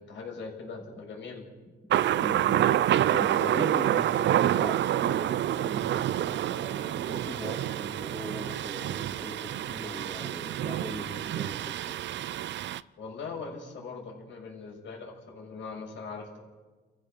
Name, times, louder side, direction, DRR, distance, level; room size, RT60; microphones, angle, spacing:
voice 1, 0.0-1.4 13.0-16.4, left 4 dB, 70° left, 1 dB, 6.5 m, -41 dB
Thunder, 1.9-12.8, right 12 dB, 65° right, 0.6 m, -27 dB
voice 2, 2.2-2.7 3.1-12.0, equal, 15° left, 0 dB, 2.9 m, -40 dB
28.5 x 14.5 x 6.8 m, 1.3 s
cardioid pair, 90°, 20 cm